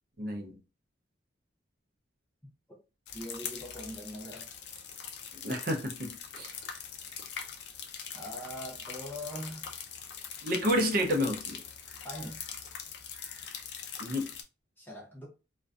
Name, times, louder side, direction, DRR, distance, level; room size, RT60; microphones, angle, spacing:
voice 1, 0.2-0.6 5.4-6.5 10.4-11.6 14.0-14.3, equal, 50° right, 0.5 m, -30 dB
sound 1, 3.1-14.4, left 7 dB, 60° left, 0.4 m, -42 dB
voice 2, 3.1-4.5 8.1-9.7 12.0-12.4 14.8-15.3, equal, 10° left, 0.6 m, -42 dB
2.5 x 2.2 x 2.3 m
head